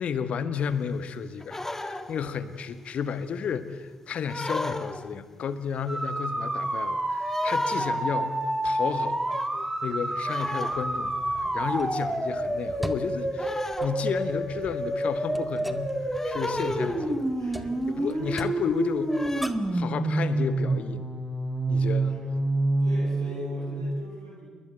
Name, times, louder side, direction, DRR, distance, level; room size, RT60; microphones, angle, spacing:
voice 1, 0.0-8.4 8.6-9.2 9.8-17.2 17.9-19.2 19.7-21.1 21.7-22.1, left 6 dB, 55° left, 12 dB, 1.8 m, -32 dB
sound 1, 1.4-2.3 4.3-5.2 7.2-8.1 9.3-9.7 10.3-11.0 12.2-12.4 13.4-14.3 16.1-17.2 18.2-18.6 19.1-19.5, left 2 dB, 15° left, 2.2 m, -35 dB
sound 2, 5.9-23.8, right 1 dB, 15° right, 5.2 m, -28 dB
sound 3, 10.7-19.8, equal, ahead, 2.1 m, -42 dB
voice 2, 16.7-18.3 22.0-22.4 22.8-24.4, right 1 dB, 90° right, -4 dB, 7.4 m, -42 dB
29.0 x 22.5 x 7.8 m, 1.4 s
figure-of-eight pair, 40°, 3 cm